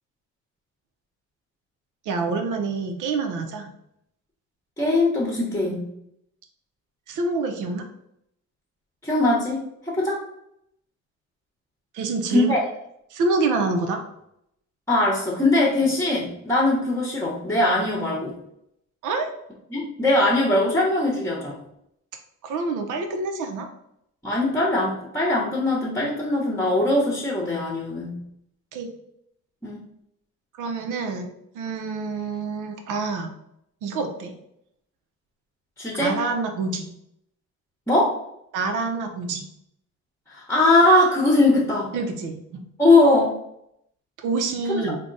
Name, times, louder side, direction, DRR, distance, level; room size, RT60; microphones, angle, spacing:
voice 1, 2.1-3.7 5.6-5.8 7.1-7.9 11.9-12.5 13.1-14.0 19.0-19.3 22.4-23.7 28.7-28.9 30.6-31.3 31.5-33.3 33.8-34.3 36.0-36.9 38.5-39.4 41.9-42.7 44.2-45.0, right 3 dB, 85° right, 5 dB, 0.7 m, -27 dB
voice 2, 4.8-5.9 9.0-10.2 12.3-12.6 14.9-18.3 19.7-21.6 24.2-28.2 29.6-29.8 35.8-36.2 37.9-38.2 40.3-41.9 42.8-43.3 44.8-44.9, left 2 dB, 10° left, -3 dB, 0.9 m, -21 dB
3.5 x 2.2 x 3.8 m, 0.76 s
cardioid pair, 90°, 30 cm